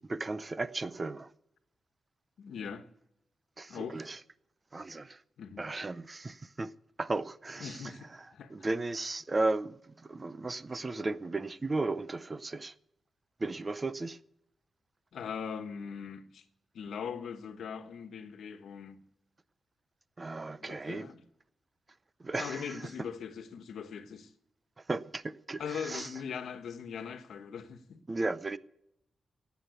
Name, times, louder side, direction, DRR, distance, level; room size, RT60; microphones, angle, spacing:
voice 1, 0.1-1.3 3.6-4.2 4.7-5.2 5.6-6.7 7.0-7.9 8.5-12.7 13.4-14.2 20.2-21.1 22.2-22.8 24.9-26.1 28.1-28.6, right 2 dB, 25° right, 0.6 m, -35 dB
voice 2, 2.4-2.9 3.7-4.0 5.4-5.7 7.6-8.5 15.1-16.4 16.7-19.0 20.6-21.2 22.4-24.3 25.6-28.0, left 7 dB, 80° left, 1.3 m, -40 dB
15.5 x 9.2 x 8.3 m
wide cardioid pair, 150°, 0 cm